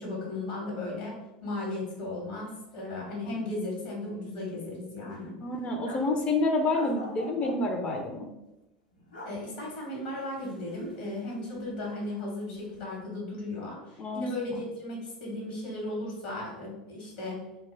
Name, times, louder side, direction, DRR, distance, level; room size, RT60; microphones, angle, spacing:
voice 1, 0.0-5.3 9.2-17.4, left 2 dB, 65° left, -3 dB, 1.1 m, -36 dB
sound 1, 2.5-2.6 2.8-3.0 3.4-4.1 4.4-4.5 5.0-6.2 6.7-8.0 8.9-9.3 9.7-11.7 12.0-12.8, left 1 dB, 80° left, 0.7 m, -46 dB
voice 2, 5.4-8.3 14.0-14.2, left 2 dB, 30° left, 2 dB, 0.4 m, -28 dB
2.2 x 2.1 x 3.2 m, 0.95 s
figure-of-eight pair, 80°, 4 cm